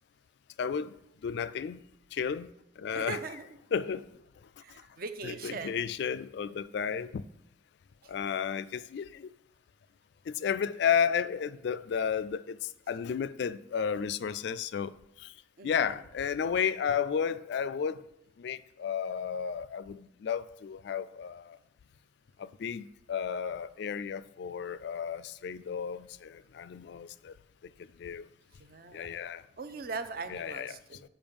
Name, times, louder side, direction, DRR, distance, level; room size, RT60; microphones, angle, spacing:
voice 1, 0.6-0.9 1.2-1.8 2.1-2.5 2.8-3.2 3.7-4.1 5.2-7.2 8.1-9.3 10.3-12.6 12.9-14.9 15.2-15.3 15.6-18.0 18.4-21.6 22.4-27.3 28.0-28.3 28.9-29.4 30.3-30.8, left 7 dB, 60° left, 0.3 m, -32 dB
voice 2, 2.9-3.5 4.6-6.0 8.0-8.1 15.6-16.0 28.6-29.1 29.6-31.0, right 4 dB, 50° right, 0.6 m, -40 dB
7.0 x 5.5 x 5.2 m
head